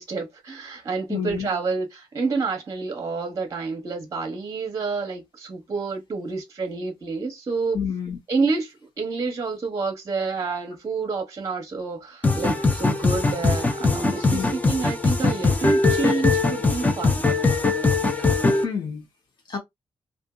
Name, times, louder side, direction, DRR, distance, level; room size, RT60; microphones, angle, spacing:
voice 1, 0.0-7.8 8.3-17.2, right 4 dB, 35° right, 0.9 m, -28 dB
voice 2, 1.1-1.5 7.7-8.2 14.3-14.5 18.2-19.1 19.5-19.6, left 7 dB, 50° left, 1.0 m, -29 dB
sound 1, 12.2-18.6, left 3 dB, 15° left, 0.5 m, -21 dB
2.6 x 2.5 x 2.3 m
wide cardioid pair, 150°, 10 cm